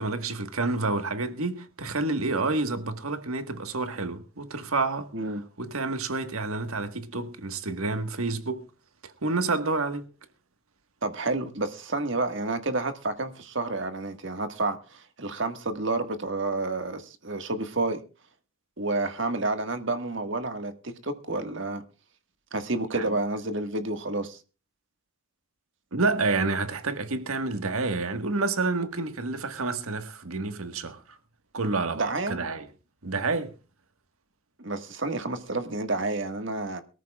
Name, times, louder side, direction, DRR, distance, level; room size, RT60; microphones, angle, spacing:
voice 1, 0.0-5.1 5.6-8.7 9.0-10.1 22.9-23.1 25.9-31.2 31.5-32.7 33.0-33.5, right 3 dB, 85° right, 1.5 m, -29 dB
voice 2, 11.0-18.0 18.8-21.8 22.5-24.4 31.9-32.4 34.6-36.8, right 2 dB, 60° right, 1.6 m, -30 dB
22.5 x 14.0 x 2.4 m
head